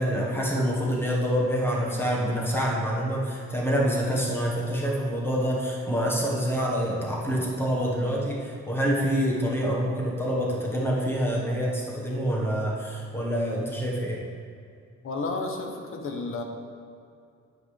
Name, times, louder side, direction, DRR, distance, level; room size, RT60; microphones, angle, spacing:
voice 1, 0.0-14.2, equal, 10° left, -3 dB, 1.4 m, -26 dB
voice 2, 15.0-16.4, left 3 dB, 45° left, 3 dB, 1.0 m, -31 dB
9.6 x 9.1 x 3.4 m, 2.4 s
wide cardioid pair, 180°, 29 cm